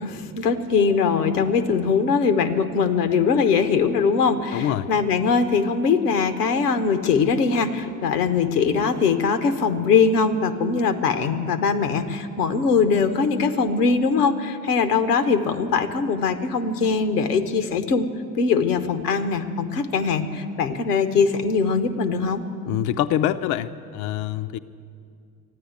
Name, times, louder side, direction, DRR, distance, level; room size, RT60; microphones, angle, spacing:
voice 1, 0.0-18.1 18.4-22.4, left 5 dB, 80° left, 10 dB, 0.8 m, -21 dB
voice 2, 4.5-4.9 22.7-24.6, left 11 dB, 45° left, 10 dB, 0.5 m, -25 dB
14.0 x 9.9 x 9.3 m, 2.4 s
figure-of-eight pair, 55°, 46 cm